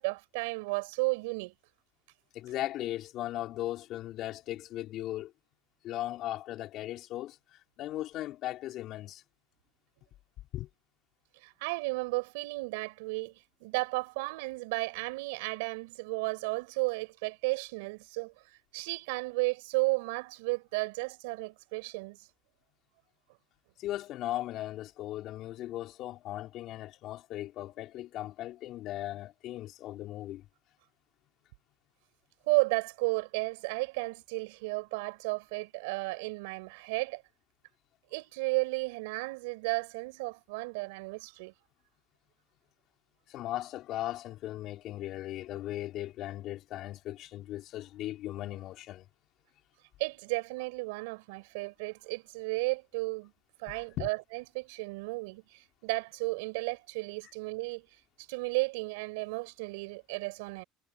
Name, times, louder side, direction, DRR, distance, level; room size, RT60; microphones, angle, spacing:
voice 1, 0.0-1.5 11.4-18.3 18.7-22.2 32.5-37.2 38.1-41.5 50.0-53.3 53.6-57.9 58.3-60.6, right 26 dB, 80° right, 4.1 m, -33 dB
voice 2, 2.3-5.3 5.8-9.2 10.5-10.7 23.8-30.5 43.3-49.1 54.0-54.1, left 14 dB, 60° left, 3.6 m, -38 dB
hypercardioid pair, 85°, 0 cm